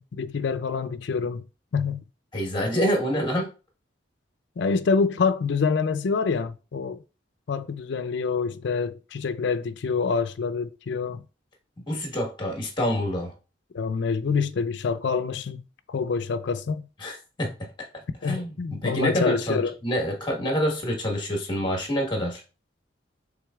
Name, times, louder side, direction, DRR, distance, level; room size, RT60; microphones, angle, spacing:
voice 1, 0.0-1.4 1.7-2.0 4.6-7.0 7.5-11.2 13.7-16.9 18.2-19.7, left 5 dB, 65° left, 0.4 m, -26 dB
voice 2, 2.3-3.5 11.9-13.3 17.0-17.7 18.2-22.4, equal, 25° left, 1.3 m, -27 dB
6.2 x 3.6 x 2.3 m
head